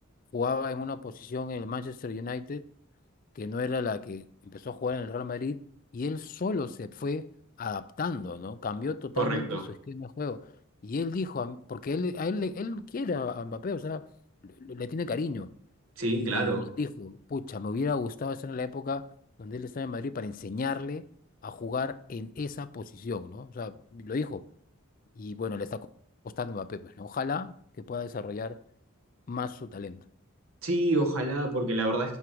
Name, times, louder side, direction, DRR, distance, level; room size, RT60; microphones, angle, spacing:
voice 1, 0.3-2.6 3.4-5.6 5.9-7.3 7.6-9.6 9.9-10.5 10.8-14.1 14.4-15.5 16.1-19.1 19.4-21.1 21.4-24.4 25.2-25.9 26.2-28.6 29.3-30.0, left 4 dB, 40° left, 0.4 m, -33 dB
voice 2, 9.2-9.6 16.0-16.7 30.6-32.2, right 2 dB, 75° right, 1.6 m, -27 dB
11.0 x 4.8 x 4.6 m
head